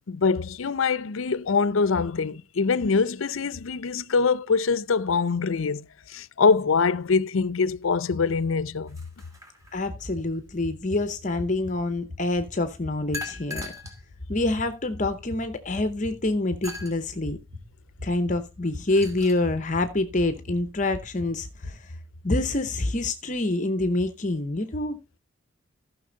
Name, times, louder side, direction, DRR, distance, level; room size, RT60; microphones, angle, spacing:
voice 1, 0.1-9.0, left 5 dB, 75° left, 0.5 m, -24 dB
sound 1, 8.9-10.0 13.1-14.0 14.7-14.8 16.6-17.0 18.6-19.4, left 2 dB, 15° right, 2.4 m, -39 dB
sound 2, 9.6-21.7, left 2 dB, 60° right, 2.8 m, -42 dB
voice 2, 9.7-13.7 14.3-17.4 18.0-22.0 22.2-25.0, left 2 dB, 35° left, 0.8 m, -26 dB
14.5 x 5.9 x 3.9 m
head